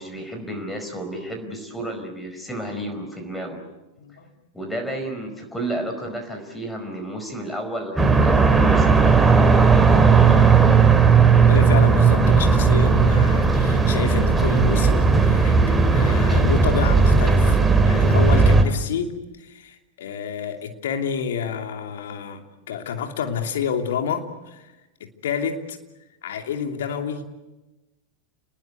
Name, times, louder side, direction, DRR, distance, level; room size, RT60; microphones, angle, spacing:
voice 1, 0.0-3.6 4.5-9.0, right 1 dB, 5° left, 5 dB, 5.0 m, -32 dB
voice 2, 4.0-4.3 11.5-17.6 17.8-24.7 25.0-25.8 26.2-27.2, left 7 dB, 60° left, 5 dB, 2.9 m, -29 dB
sound 1, 8.0-18.6, right 4 dB, 10° right, 2.5 m, -16 dB
30.0 x 20.5 x 8.2 m, 1.0 s
figure-of-eight pair, 90°, 0 cm